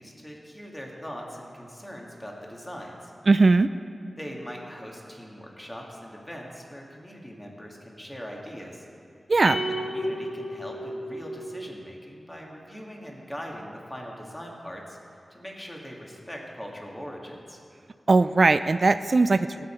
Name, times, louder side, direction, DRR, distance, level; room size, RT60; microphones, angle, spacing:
voice 1, 0.0-3.1 4.2-8.9 9.6-15.0 15.3-17.6, equal, 15° left, -1 dB, 1.9 m, -41 dB
voice 2, 3.3-3.7 9.3-9.6 18.1-19.7, right 3 dB, 50° right, 11 dB, 0.3 m, -19 dB
sound 1, 9.4-11.9, equal, 80° left, 1.6 m, -33 dB
18.5 x 8.9 x 4.4 m, 2.5 s
wide cardioid pair, 90°, 0 cm